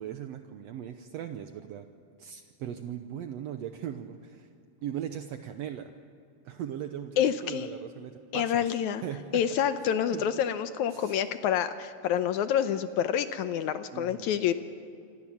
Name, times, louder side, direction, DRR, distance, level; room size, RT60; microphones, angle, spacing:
voice 1, 0.0-1.9 2.2-4.5 4.8-5.9 6.4-8.7 9.0-9.4 10.1-10.2 10.9-11.2 13.9-14.4, right 10 dB, 80° right, 7 dB, 1.5 m, -39 dB
voice 2, 7.2-7.7 8.3-9.0 9.3-14.5, left 9 dB, 75° left, 10 dB, 1.9 m, -27 dB
28.0 x 24.0 x 7.3 m, 2.4 s
omnidirectional pair, 4.1 m